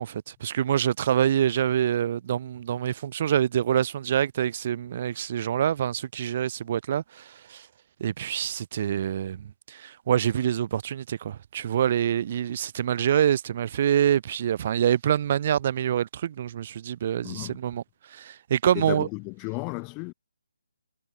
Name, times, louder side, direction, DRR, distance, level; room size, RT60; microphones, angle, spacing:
voice 1, 0.0-7.2 7.5-7.6 8.0-17.8 18.1-19.1, right 10 dB, 35° right, 0.3 m, -26 dB
voice 2, 17.2-17.6 18.7-20.1, left 33 dB, 20° left, 2.1 m, -33 dB
figure-of-eight pair, 145°, 0 cm